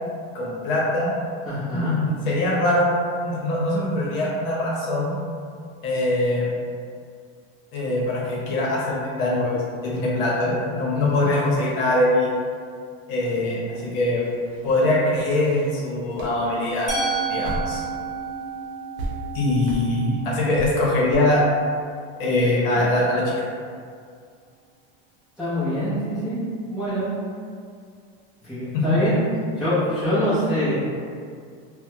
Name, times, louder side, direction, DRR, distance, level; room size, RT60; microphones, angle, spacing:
voice 1, 0.3-1.1 1.7-2.9 3.2-5.2 5.8-6.5 7.7-12.3 13.1-14.2 14.6-16.9 17.3-17.8 19.3-21.4 22.2-23.3 28.7-29.0, left 1 dB, 60° left, -4 dB, 0.8 m, -22 dB
voice 2, 1.5-2.0 10.9-11.1 25.4-26.4 26.7-27.1 28.4-29.2 29.6-30.7, equal, ahead, -15 dB, 0.5 m, -24 dB
sound 1, 14.2-18.0 18.3-18.4 19.0-19.1 19.7-19.9 20.5-20.7 21.1-21.2, right 1 dB, 80° right, 0.8 m, -36 dB
Musical instrument, 16.9-22.8, right 5 dB, 40° right, 0.9 m, -32 dB
3.3 x 2.1 x 2.7 m, 2.2 s
supercardioid pair, 180°, 31 cm